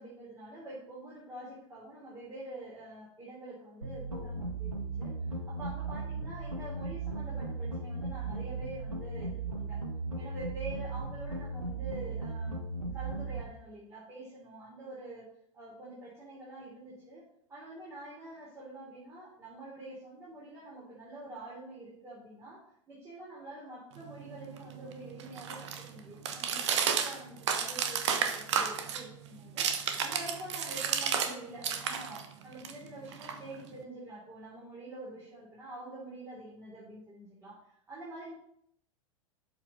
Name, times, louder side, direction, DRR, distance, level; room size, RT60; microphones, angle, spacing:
voice 1, 0.0-5.1 5.5-9.8 10.1-15.2 15.5-17.2 17.5-22.6 22.9-38.3, right 2 dB, 15° right, -7 dB, 3.1 m, -46 dB
sound 1, 3.8-13.4, right 3 dB, 90° right, 1.0 m, -37 dB
sound 2, 24.0-31.3 31.6-33.8, right 7 dB, 60° right, 1.1 m, -33 dB
12.0 x 5.2 x 3.9 m, 0.72 s
figure-of-eight pair, 90°, 17 cm